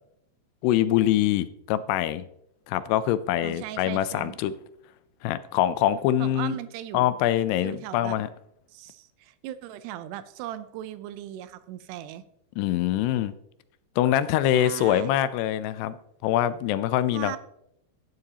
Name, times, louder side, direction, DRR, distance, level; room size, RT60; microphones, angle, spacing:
voice 1, 0.6-2.3 2.7-4.5 5.2-6.6 6.9-8.3 12.6-13.3 14.0-16.0 16.2-17.4, left 12 dB, 85° left, 14 dB, 2.6 m, -24 dB
voice 2, 3.4-4.4 6.2-7.1 7.6-8.2 8.7-12.2 14.5-15.1 17.1-17.4, right 12 dB, 85° right, 13 dB, 2.7 m, -38 dB
12.5 x 11.0 x 2.9 m, 0.77 s
omnidirectional pair, 4.8 m